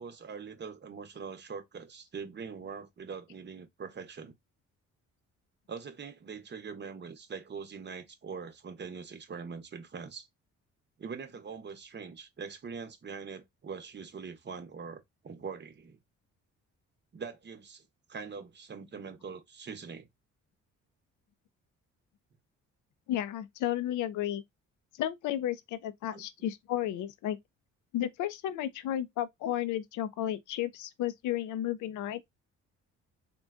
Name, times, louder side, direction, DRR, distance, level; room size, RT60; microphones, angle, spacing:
voice 1, 0.0-4.3 5.7-10.3 11.0-16.0 17.1-17.8 18.1-20.1 26.1-26.2, right 5 dB, 35° right, 0.8 m, -43 dB
voice 2, 23.1-24.4 25.0-27.4 27.9-32.2, left 12 dB, 80° left, 0.5 m, -33 dB
3.7 x 2.2 x 2.4 m
cardioid pair, 90°, 30 cm